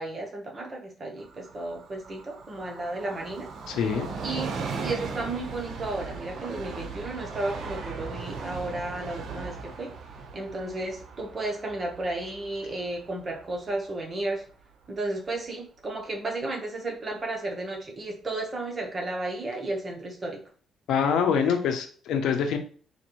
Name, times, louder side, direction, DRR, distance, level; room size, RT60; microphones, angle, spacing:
voice 1, 0.0-3.5 4.2-4.5 4.8-9.9 10.3-14.4 14.9-20.4, right 2 dB, 35° right, 0 dB, 1.1 m, -33 dB
Train, 1.2-14.5 14.8-14.9, right 4 dB, 65° right, 0.7 m, -38 dB
voice 2, 3.7-4.1 20.9-22.6, left 7 dB, 80° left, 6 dB, 0.6 m, -25 dB
4.2 x 2.6 x 3.0 m, 0.43 s
cardioid pair, 90°, 0 cm